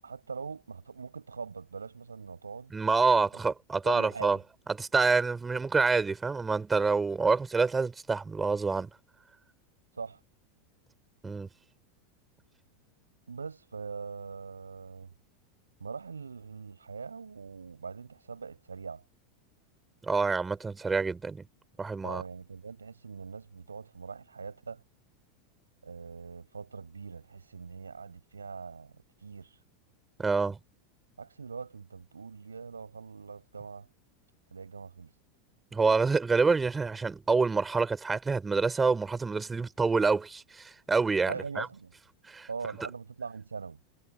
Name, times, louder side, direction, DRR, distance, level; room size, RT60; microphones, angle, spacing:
voice 1, 0.0-2.7 3.8-4.4 9.9-10.2 13.3-15.1 15.8-19.0 22.0-24.8 25.8-29.6 31.2-33.9 34.5-35.1 41.3-41.9 42.5-43.8, right 5 dB, 85° right, 6.6 m, -42 dB
voice 2, 2.7-4.4 4.7-8.9 11.2-11.5 20.0-21.4 21.8-22.2 30.2-30.6 35.7-41.7 42.3-42.5, right 4 dB, 15° right, 4.8 m, -27 dB
hypercardioid pair, 90°, 0 cm